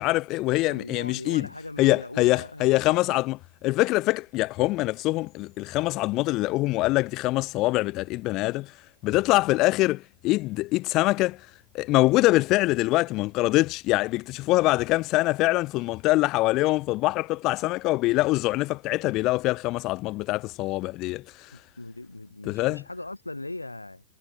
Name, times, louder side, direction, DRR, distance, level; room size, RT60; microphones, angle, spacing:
voice 1, 0.0-1.5 1.8-3.4 3.6-8.7 9.0-11.4 11.7-21.6 22.5-22.8, left 19 dB, 40° left, 1.2 m, -24 dB
voice 2, 0.6-3.0 21.5-24.0, left 2 dB, 85° left, 6.4 m, -39 dB
figure-of-eight pair, 90°, 0 cm